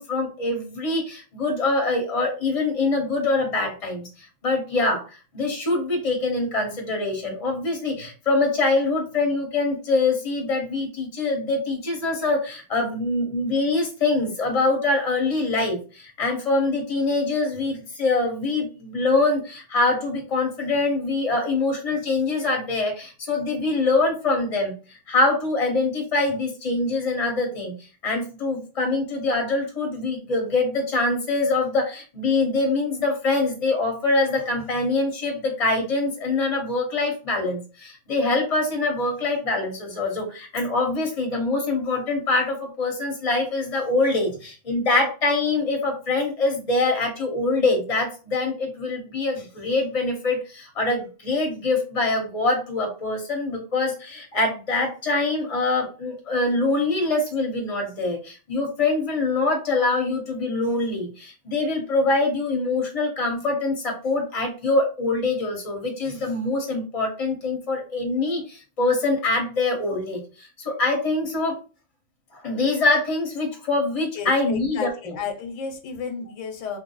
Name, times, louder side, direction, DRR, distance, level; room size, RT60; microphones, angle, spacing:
voice 1, 0.0-71.6 72.3-75.2, left 3 dB, 30° left, 1 dB, 0.9 m, -24 dB
voice 2, 74.1-76.8, left 6 dB, 90° left, 6 dB, 1.0 m, -32 dB
2.6 x 2.3 x 3.8 m, 0.34 s
omnidirectional pair, 1.2 m